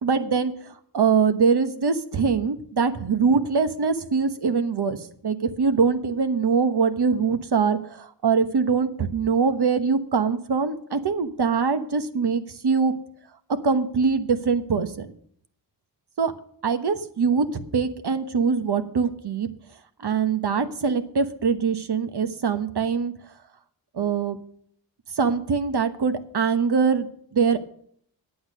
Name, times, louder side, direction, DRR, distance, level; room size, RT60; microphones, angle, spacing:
voice 1, 0.0-5.0 5.2-12.9 13.6-15.1 16.2-16.3 16.6-17.5 17.7-19.5 20.0-23.1 23.9-24.4 25.2-27.6, right 5 dB, 60° right, 10 dB, 1.1 m, -23 dB
10.5 x 8.6 x 6.3 m, 0.62 s
wide cardioid pair, 95°, 43 cm